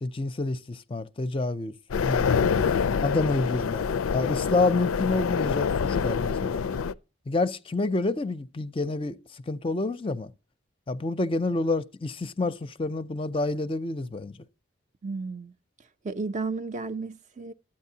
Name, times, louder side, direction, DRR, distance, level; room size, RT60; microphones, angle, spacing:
voice 1, 0.0-1.7 2.0-2.5 3.0-6.6 7.3-10.3 10.9-14.4, left 2 dB, 25° left, 0.5 m, -28 dB
sound 1, 1.9-6.9, left 6 dB, 90° left, 0.4 m, -26 dB
voice 2, 15.0-15.5 16.0-17.5, right 3 dB, 35° right, 0.4 m, -33 dB
13.0 x 8.7 x 2.8 m
head